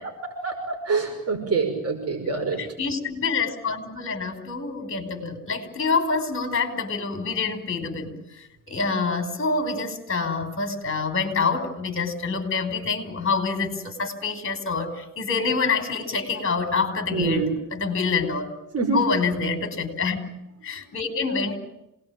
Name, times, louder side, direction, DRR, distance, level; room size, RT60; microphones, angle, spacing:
voice 1, 0.4-2.6 17.1-17.5 18.7-19.0, right 4 dB, 45° right, 3 dB, 5.9 m, -25 dB
voice 2, 2.6-8.2 8.7-17.5 17.7-18.5 18.9-20.2 20.6-21.6, left 4 dB, 40° left, 8 dB, 5.2 m, -26 dB
27.0 x 20.0 x 9.0 m, 0.89 s
cardioid pair, 110°, 34 cm